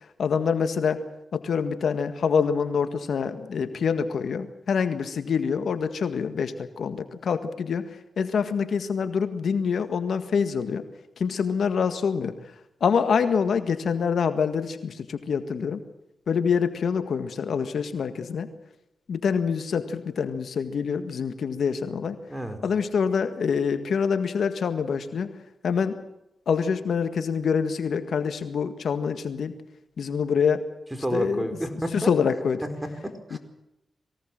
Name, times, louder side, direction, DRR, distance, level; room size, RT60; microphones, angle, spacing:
voice 1, 0.2-1.0 1.3-7.9 8.2-10.9 11.2-12.4 12.8-15.8 16.3-18.5 19.1-22.2 22.6-25.3 25.6-26.0 26.5-29.5 30.0-30.6 31.1-31.5 31.9-32.6 33.3-33.4, left 6 dB, 75° left, 10 dB, 1.7 m, -26 dB
voice 2, 31.0-32.1 32.8-33.4, right 1 dB, 10° right, 7 dB, 4.8 m, -30 dB
23.0 x 17.5 x 7.7 m, 0.88 s
cardioid pair, 55°, 0 cm